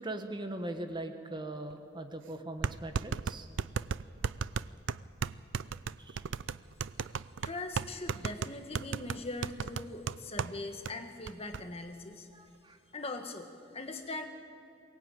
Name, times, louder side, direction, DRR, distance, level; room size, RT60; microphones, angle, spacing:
voice 1, 0.0-3.5 6.0-6.2 12.3-12.8, right 1 dB, 25° right, 7 dB, 1.2 m, -40 dB
sound 1, 1.7-1.8 2.6-10.6 10.9-11.0 11.3-11.6, right 5 dB, 75° right, 0.5 m, -35 dB
voice 2, 7.4-12.3 12.9-14.2, left 2 dB, 30° left, 6 dB, 1.6 m, -41 dB
22.5 x 19.0 x 9.1 m, 2.6 s
head